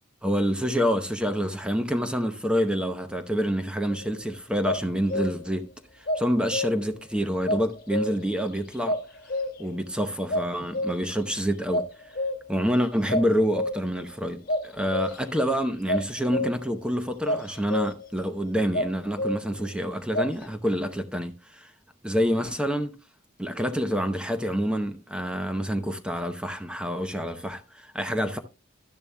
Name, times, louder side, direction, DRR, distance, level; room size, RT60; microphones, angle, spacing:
voice 1, 0.2-5.7 6.0-9.0 9.6-12.1 12.5-21.7 22.0-23.0 23.4-28.4, equal, 5° right, 0.8 m, -27 dB
sound 1, 3.9-4.2 4.6-5.6 6.1-7.0 7.5-8.4 8.9-9.8 10.3-11.2 11.7-12.7 13.1-14.0 14.5-15.4 15.9-16.8 17.3-18.1 18.7-19.7 20.1-20.3, left 1 dB, 45° left, 1.5 m, -29 dB
12.5 x 10.5 x 2.2 m
head